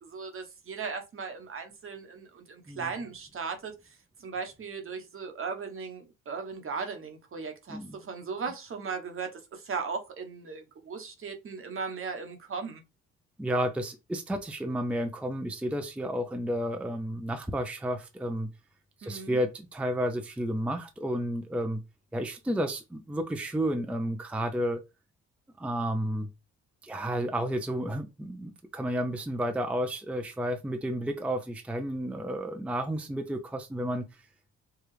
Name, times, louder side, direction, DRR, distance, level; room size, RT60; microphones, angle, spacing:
voice 1, 0.0-3.7 4.2-12.8 19.0-19.4, right 5 dB, 45° right, 1.1 m, -37 dB
voice 2, 13.4-18.5 19.0-21.8 22.1-24.8 25.6-26.3 26.8-34.1, equal, 5° right, 0.5 m, -31 dB
4.8 x 2.4 x 3.2 m
cardioid pair, 90°, 30 cm